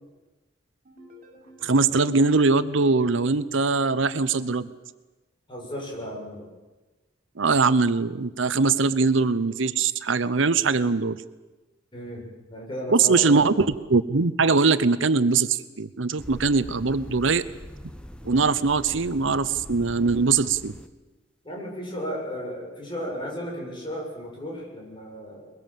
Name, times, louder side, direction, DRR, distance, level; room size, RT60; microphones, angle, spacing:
sound 1, 0.8-3.8, left 1 dB, 45° right, 6.3 m, -54 dB
voice 1, 1.6-4.7 7.4-11.2 12.9-17.4 18.2-20.7, right 4 dB, 80° right, 14 dB, 0.8 m, -22 dB
voice 2, 5.5-6.5 11.9-13.5 21.4-25.5, equal, 25° left, -1 dB, 7.0 m, -34 dB
sound 2, 16.2-20.9, equal, 5° left, 1.1 m, -42 dB
22.5 x 22.0 x 7.5 m, 1.2 s
head